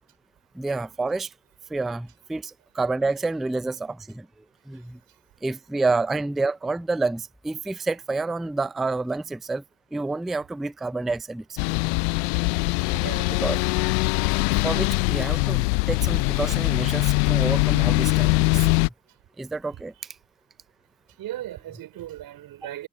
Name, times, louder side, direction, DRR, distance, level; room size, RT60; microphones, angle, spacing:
voice 1, 0.6-1.3 1.7-2.4 2.8-4.2 4.7-5.0 5.4-9.6 9.9-11.4 13.4-13.6 14.6-18.8 19.4-19.9, right 3 dB, ahead, 0.3 m, -28 dB
sound 1, 11.6-18.9, left 30 dB, 70° left, 0.5 m, -22 dB
voice 2, 12.9-13.3 21.2-22.9, right 13 dB, 50° right, 4.6 m, -37 dB
supercardioid pair, 95°, 45 cm